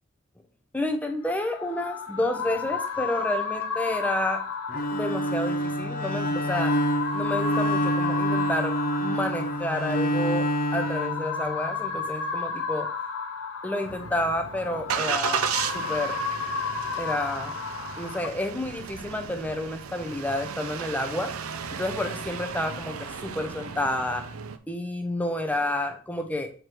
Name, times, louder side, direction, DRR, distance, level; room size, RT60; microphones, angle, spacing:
voice 1, 0.7-4.4 4.9-6.8 7.1-12.9 13.6-15.5 15.7-16.2 17.0-17.6 18.0-21.3 21.7-24.3 24.7-26.5, left 1 dB, 5° left, 5 dB, 0.7 m, -30 dB
sound 1, 1.3-18.3, left 5 dB, 80° left, 0.8 m, -33 dB
Bowed string instrument, 4.7-11.9, equal, 45° left, 0.7 m, -27 dB
Engine starting, 13.8-24.6, right 7 dB, 80° right, 0.5 m, -34 dB
6.6 x 3.2 x 4.4 m, 0.40 s
head